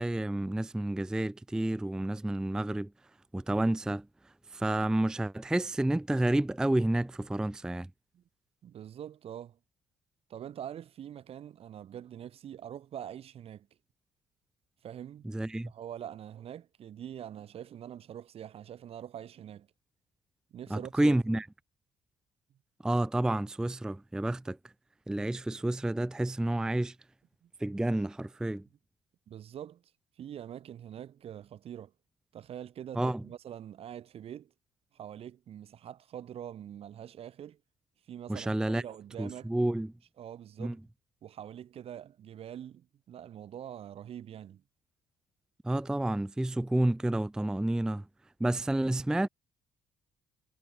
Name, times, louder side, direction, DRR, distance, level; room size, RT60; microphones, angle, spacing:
voice 1, 0.0-2.9 3.3-7.9 15.2-15.7 20.7-21.5 22.8-24.6 25.1-27.0 27.6-28.7 33.0-33.2 38.3-38.8 39.2-39.9 40.6-40.8 45.6-48.0 48.4-49.3, right 1 dB, 5° right, 0.4 m, -30 dB
voice 2, 8.6-9.6 10.3-13.7 14.8-15.3 15.6-19.7 20.5-21.1 27.4-27.5 29.3-29.8 30.2-31.9 32.3-34.5 34.9-37.6 38.1-39.5 40.2-40.8 41.2-44.6, right 10 dB, 55° right, 0.9 m, -44 dB
cardioid pair, 85°, 12 cm